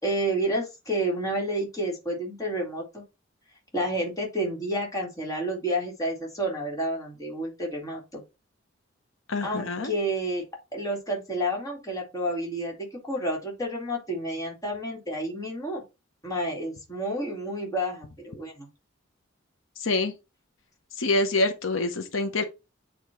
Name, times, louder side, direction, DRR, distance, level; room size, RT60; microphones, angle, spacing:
voice 1, 0.0-3.0 3.7-8.2 9.4-10.4 10.7-15.8 16.2-18.7, right 1 dB, 20° left, 2.2 m, -30 dB
voice 2, 9.3-9.9 19.8-20.1 21.0-22.4, left 2 dB, 80° left, 0.9 m, -26 dB
8.5 x 3.1 x 4.4 m
head